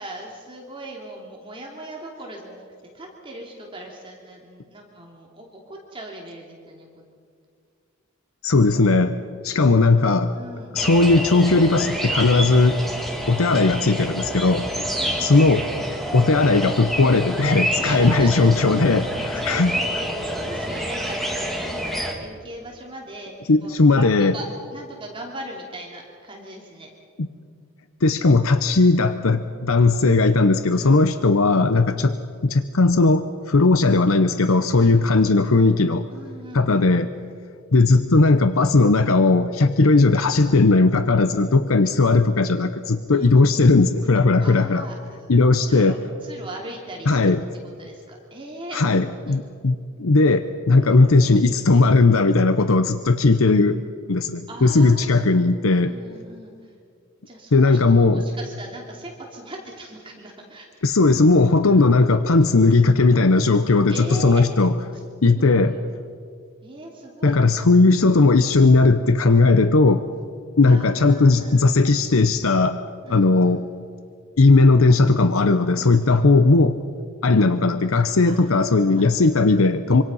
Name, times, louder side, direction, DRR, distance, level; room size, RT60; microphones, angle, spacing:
voice 1, 0.0-2.6 2.9-7.0 9.5-9.9 10.3-10.8 14.7-15.4 17.7-19.0 19.3-23.3 23.6-26.9 30.0-30.2 30.7-31.0 34.7-35.4 36.1-36.9 41.2-41.5 43.1-43.4 44.4-45.3 45.6-49.4 50.8-51.0 54.5-56.8 57.3-60.7 61.6-62.1 63.9-64.5 64.9-65.0 65.3-65.9 66.6-67.5 67.8-68.0 68.7-68.9 70.7-71.7 73.0-73.6 75.7-76.3 78.3-79.6, right 1 dB, 25° right, -1 dB, 3.0 m, -39 dB
voice 2, 8.4-10.3 10.7-12.8 13.3-14.7 15.2-15.6 16.1-19.8 23.5-24.3 28.0-32.2 32.4-36.0 36.5-37.1 37.7-44.9 45.3-45.9 47.1-47.4 48.7-53.8 54.1-55.9 57.5-58.2 60.8-63.9 64.2-64.7 65.2-65.7 67.2-70.0 70.6-72.8 73.1-73.6 74.4-76.8 77.2-80.0, left 3 dB, 70° left, 10 dB, 0.8 m, -17 dB
sound 1, 10.8-22.1, equal, ahead, 2.6 m, -28 dB
25.5 x 25.5 x 5.6 m, 2.2 s
head